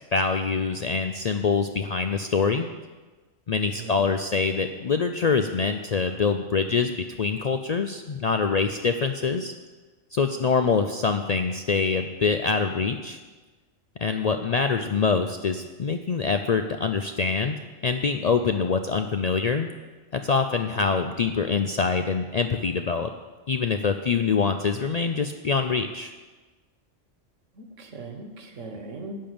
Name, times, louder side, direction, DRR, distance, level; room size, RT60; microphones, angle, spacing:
voice 1, 0.1-2.7 3.5-6.9 7.2-9.5 10.1-13.2 14.0-17.5 17.8-19.7 20.1-23.1 23.5-26.1, left 5 dB, 70° left, 7 dB, 0.3 m, -25 dB
voice 2, 3.7-4.0 10.6-10.9 27.5-29.2, right 2 dB, 70° right, 5 dB, 1.6 m, -39 dB
11.0 x 5.4 x 8.7 m, 1.3 s
omnidirectional pair, 1.3 m